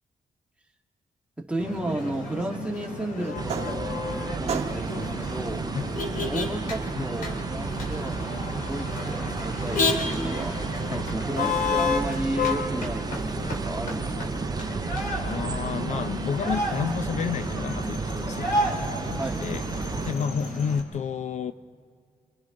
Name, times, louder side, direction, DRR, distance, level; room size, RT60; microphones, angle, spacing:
voice 1, 1.4-5.7 6.2-14.4 19.2-19.5, right 1 dB, 10° right, 1 dB, 1.7 m, -33 dB
Motor vehicle (road), 1.6-20.8, left 2 dB, 85° left, 2.8 m, -31 dB
sound 1, 3.2-4.2 4.5-5.1 6.2-15.6, right 6 dB, 50° right, 1.1 m, -40 dB
sound 2, 3.4-20.1, right 4 dB, 30° right, 0.4 m, -33 dB
voice 2, 15.2-18.5 19.0-21.5, left 7 dB, 60° left, 12 dB, 0.5 m, -31 dB
28.5 x 26.5 x 3.8 m, 2.3 s
cardioid pair, 90°, 14 cm